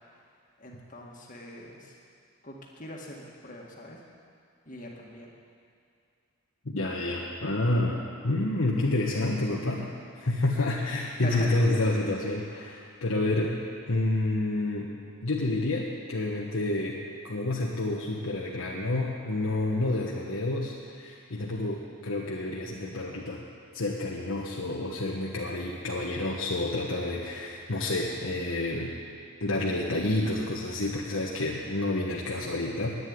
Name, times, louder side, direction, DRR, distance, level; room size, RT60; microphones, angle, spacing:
voice 1, 0.6-1.9 2.4-4.0 4.7-5.3 11.2-11.6 12.5-12.8, left 1 dB, 40° left, -1 dB, 1.9 m, -41 dB
voice 2, 6.6-9.9 10.2-13.6 13.9-14.9 15.2-17.0 17.2-23.4 23.7-28.9 29.4-33.0, left 2 dB, 80° left, -4 dB, 1.3 m, -29 dB
11.0 x 9.7 x 9.6 m, 2.4 s
head